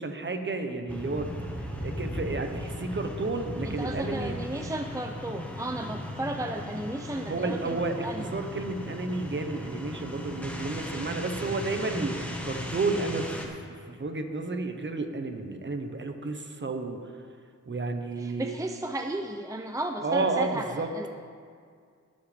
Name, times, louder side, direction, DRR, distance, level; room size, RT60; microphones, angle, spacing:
voice 1, 0.0-1.3 1.8-4.4 7.3-17.0 17.7-18.6 20.0-20.9, right 3 dB, 40° right, 5 dB, 1.1 m, -31 dB
sound 1, 0.9-13.5, left 1 dB, 5° left, 1.5 m, -37 dB
voice 2, 3.6-8.5 18.2-21.1, right 1 dB, 10° right, 5 dB, 0.5 m, -34 dB
21.5 x 7.5 x 3.5 m, 2.2 s
cardioid pair, 75°, 30 cm